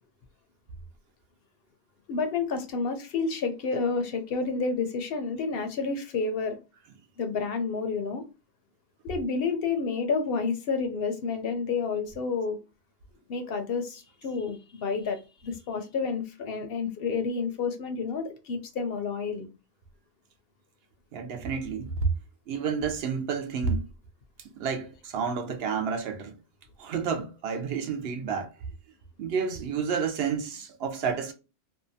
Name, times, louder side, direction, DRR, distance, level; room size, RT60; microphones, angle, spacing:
voice 1, 2.1-6.6 7.2-8.2 9.0-12.6 13.3-19.5, left 4 dB, 60° left, 0.7 m, -30 dB
voice 2, 21.1-22.1 22.5-23.9 24.6-26.4 26.8-28.5 29.2-31.3, right 6 dB, 65° right, 0.7 m, -30 dB
2.7 x 2.1 x 2.6 m
omnidirectional pair, 1.2 m